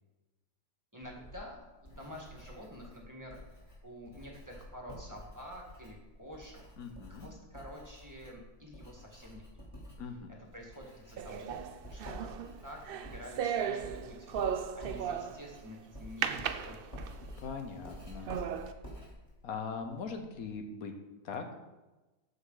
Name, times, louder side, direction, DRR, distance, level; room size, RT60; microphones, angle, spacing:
voice 1, 0.9-3.4 3.8-6.6 7.1-9.4 10.4-11.6 11.9-12.3 12.6-14.4 14.7-16.9, equal, 15° right, -1 dB, 1.7 m, -48 dB
Writing, 1.0-20.5, equal, 20° left, 3.1 m, -50 dB
voice 2, 6.8-7.3 10.0-10.3 17.4-18.3 19.4-20.9 21.2-21.5, left 5 dB, 80° left, 6 dB, 1.4 m, -40 dB
sound 1, 11.2-15.6 16.2-17.3 17.8-17.9 18.3-18.7, right 8 dB, 65° right, 0.5 m, -36 dB
14.0 x 5.5 x 3.9 m, 1.1 s
omnidirectional pair, 1.5 m